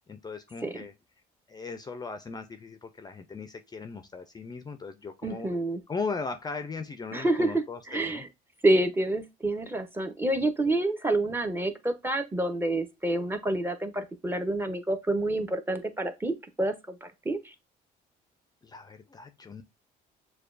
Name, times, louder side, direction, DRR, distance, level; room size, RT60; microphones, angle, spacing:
voice 1, 0.1-0.9 1.5-5.5 5.9-8.2 18.6-19.6, left 4 dB, 25° left, 0.5 m, -38 dB
voice 2, 5.2-5.8 7.1-7.6 7.9-8.3 8.6-17.5, right 2 dB, 15° right, 0.7 m, -28 dB
6.7 x 2.3 x 2.5 m
cardioid pair, 110°, 17 cm